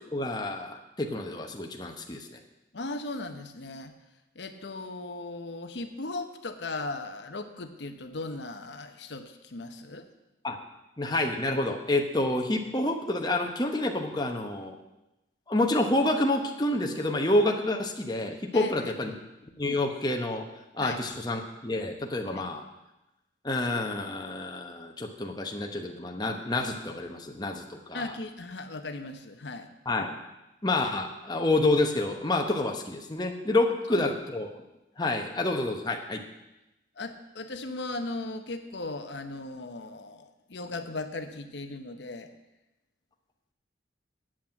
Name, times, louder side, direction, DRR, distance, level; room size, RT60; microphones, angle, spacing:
voice 1, 0.1-2.4 10.4-10.6 11.0-14.7 15.5-19.1 19.6-20.4 20.7-22.6 23.4-28.0 29.9-30.2 30.6-34.5 35.0-36.2, left 2 dB, 20° left, 2 dB, 1.0 m, -28 dB
voice 2, 2.7-3.9 4.3-10.1 18.5-19.2 20.8-21.0 22.4-22.5 27.9-29.7 33.9-34.1 37.0-42.3, left 2 dB, 70° left, 7 dB, 0.9 m, -37 dB
8.3 x 7.5 x 8.7 m, 0.97 s
head